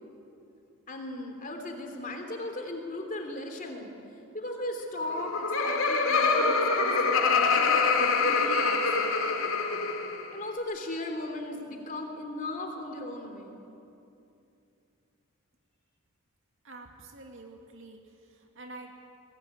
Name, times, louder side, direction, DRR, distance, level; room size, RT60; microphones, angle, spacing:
voice 1, 0.9-3.9 4.3-8.8 10.3-13.6, left 1 dB, 35° left, 4 dB, 3.1 m, -37 dB
Laughter, 5.0-10.3, left 4 dB, 65° left, 2.6 m, -25 dB
voice 2, 16.6-18.0 18.3-18.9, right 2 dB, 60° right, 2 dB, 2.4 m, -47 dB
22.0 x 19.5 x 9.8 m, 2.7 s
head